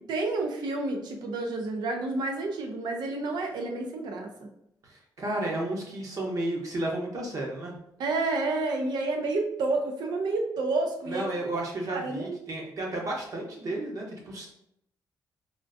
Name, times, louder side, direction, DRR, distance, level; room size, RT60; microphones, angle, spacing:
voice 1, 0.1-4.5 8.0-11.3 11.9-12.4, right 3 dB, 80° right, 3 dB, 0.6 m, -30 dB
voice 2, 4.8-7.7 11.0-14.5, right 1 dB, 50° right, -1 dB, 0.9 m, -32 dB
3.6 x 2.5 x 2.5 m, 0.77 s
cardioid pair, 135°, 7 cm